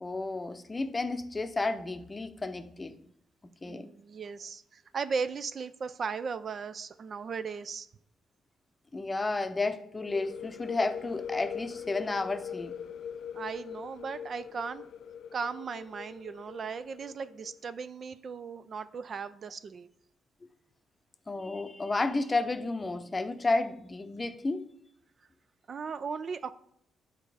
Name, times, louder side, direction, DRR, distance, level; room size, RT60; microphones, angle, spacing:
voice 1, 0.0-3.0 3.6-3.9 8.9-12.7 20.4-20.5 21.3-24.7, left 3 dB, 20° left, 0.7 m, -32 dB
voice 2, 3.6-7.9 13.3-14.9 15.3-19.9 25.7-26.5, right 5 dB, 50° right, 0.4 m, -37 dB
sound 1, 10.0-17.6, left 8 dB, 70° left, 0.4 m, -42 dB
9.1 x 4.1 x 4.9 m
cardioid pair, 90°, 0 cm